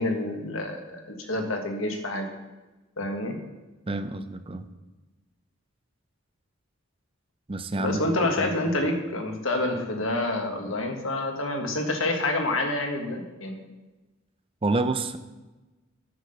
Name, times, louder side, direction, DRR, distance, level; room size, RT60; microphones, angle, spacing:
voice 1, 0.0-2.3 3.0-3.4 7.8-13.6, left 2 dB, 85° left, 3 dB, 1.5 m, -28 dB
voice 2, 3.9-4.7 7.5-8.0 8.4-8.5 14.6-15.2, right 2 dB, 25° right, 10 dB, 0.5 m, -28 dB
9.5 x 5.9 x 6.5 m, 1.2 s
head